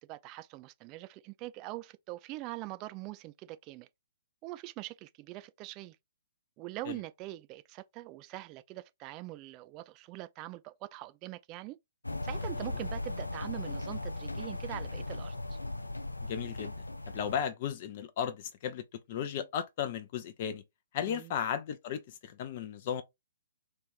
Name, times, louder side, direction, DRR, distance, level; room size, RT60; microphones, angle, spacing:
voice 1, 0.0-3.9 4.4-6.0 6.6-11.8 12.2-15.6 21.1-21.3, right 18 dB, 25° right, 0.3 m, -43 dB
sound 1, 12.0-17.5, left 2 dB, 80° left, 0.4 m, -38 dB
voice 2, 16.3-16.7 17.1-20.6 20.9-23.0, left 8 dB, 40° left, 0.6 m, -35 dB
3.2 x 2.6 x 3.4 m
figure-of-eight pair, 125°, 0 cm